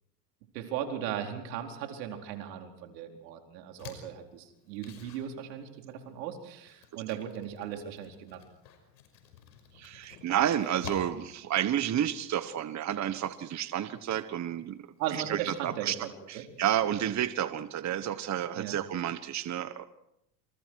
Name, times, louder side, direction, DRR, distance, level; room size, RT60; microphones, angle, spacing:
voice 1, 0.5-8.5 15.0-16.1 16.3-16.4 18.5-18.7, right 10 dB, 80° right, 4 dB, 4.4 m, -37 dB
sound 1, 3.8-17.4, left 7 dB, 90° left, 5.8 m, -52 dB
voice 2, 9.7-14.8 15.1-15.9 16.3-19.8, right 11 dB, 35° right, 12 dB, 1.4 m, -30 dB
28.0 x 27.5 x 4.8 m, 0.80 s
hypercardioid pair, 95°, 50 cm